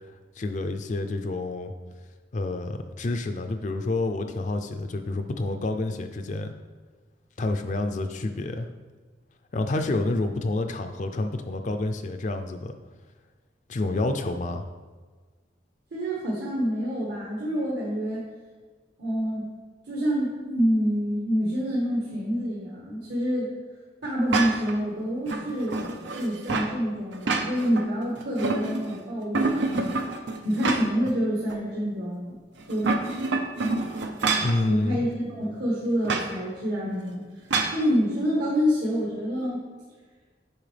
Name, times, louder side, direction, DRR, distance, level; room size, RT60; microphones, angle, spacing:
voice 1, 0.4-1.7 2.3-6.5 7.4-8.7 9.5-12.8 13.7-14.7 34.4-35.0, left 2 dB, 40° left, 7 dB, 0.4 m, -28 dB
voice 2, 15.9-18.2 19.0-19.6 19.9-23.5 24.0-25.8 26.1-30.0 30.4-32.3 32.7-32.9 34.7-37.2 37.7-39.6, equal, 70° right, -6 dB, 1.4 m, -27 dB
sound 1, 24.3-24.8 25.3-26.7 27.1-27.9 28.2-29.0 29.3-31.1 31.5-31.6 32.6-34.6 36.0-36.3 37.5-37.8, right 3 dB, 85° right, 0.6 m, -27 dB
8.7 x 5.5 x 3.3 m, 1.4 s
head